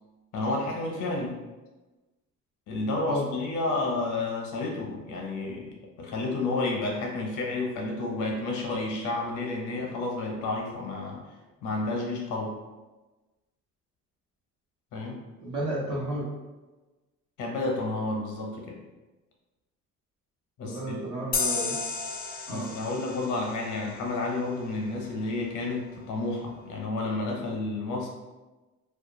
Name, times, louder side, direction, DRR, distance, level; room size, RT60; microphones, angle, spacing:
voice 1, 0.3-1.4 2.7-11.2 11.6-12.6 14.9-15.2 17.4-18.8 20.6-21.0 22.5-28.1, left 2 dB, 80° left, 0 dB, 0.7 m, -31 dB
voice 2, 15.4-16.2 20.6-21.8 22.5-22.7, right 1 dB, 75° right, -4 dB, 1.0 m, -32 dB
sound 1, 21.3-24.7, left 4 dB, 30° left, 0.4 m, -33 dB
2.4 x 2.2 x 3.0 m, 1.2 s
cardioid pair, 90°, 30 cm